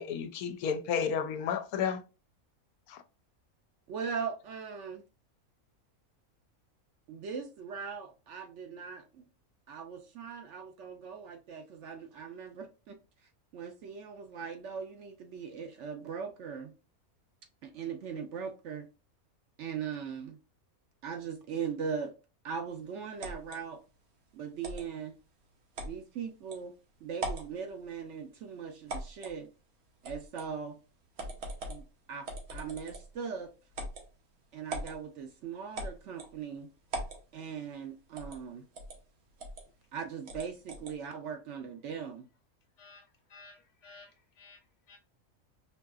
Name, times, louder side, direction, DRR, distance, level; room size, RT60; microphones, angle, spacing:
voice 1, 0.0-2.0 2.9-3.0, left 7 dB, 90° left, 1.1 m, -32 dB
voice 2, 3.9-5.0 7.1-9.2 9.7-13.0 13.5-16.7 17.6-18.9 19.6-20.4 21.0-22.1 22.4-23.8 24.3-25.1 25.8-26.7 27.0-29.5 30.0-30.8 31.7-33.5 34.5-36.7 37.3-38.7 39.9-42.3, right 6 dB, 65° right, 0.8 m, -40 dB
sound 1, 23.2-23.6 24.6-24.9 25.7-26.0 26.5-26.6 27.1-27.5 28.9-29.4 30.0-30.5 31.2-31.8 32.2-33.1 33.7-34.0 34.7-35.0 35.7-36.3 36.9-37.2 38.2-38.4 38.7-39.0 39.4-39.6 40.3-40.9, right 1 dB, 85° right, 1.5 m, -39 dB
voice 3, 43.3-44.1 44.4-44.6 44.9-45.0, left 3 dB, 60° left, 1.2 m, -53 dB
4.7 x 2.7 x 2.4 m
omnidirectional pair, 1.5 m